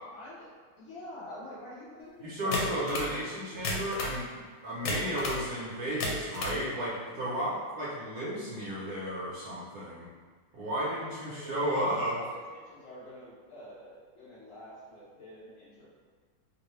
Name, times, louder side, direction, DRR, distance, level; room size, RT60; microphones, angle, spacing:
voice 1, 0.1-0.5 0.8-2.9 7.1-7.6 10.8-11.6 12.0-15.9, left 1 dB, 50° left, -10 dB, 1.2 m, -47 dB
voice 2, 2.2-10.1 10.5-12.2, equal, 65° right, -7 dB, 1.1 m, -33 dB
sound 1, 2.5-3.1 3.6-4.2 4.9-5.4 5.8-6.6, left 1 dB, 85° left, 1.3 m, -32 dB
3.1 x 2.6 x 3.1 m, 1.5 s
omnidirectional pair, 2.0 m